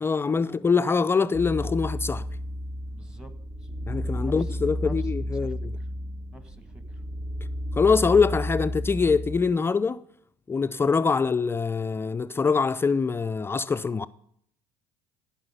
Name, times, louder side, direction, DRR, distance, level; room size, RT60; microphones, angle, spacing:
voice 1, 0.0-2.3 3.9-5.7 7.8-10.0 10.5-14.1, left 5 dB, 20° left, 0.4 m, -24 dB
sound 1, 1.3-9.4, equal, 45° right, 1.7 m, -32 dB
voice 2, 2.9-3.3 3.6-3.7 4.2-5.1 5.4-5.9 6.3-7.0, equal, 5° right, 1.5 m, -48 dB
15.5 x 6.0 x 5.6 m
supercardioid pair, 90°, 12 cm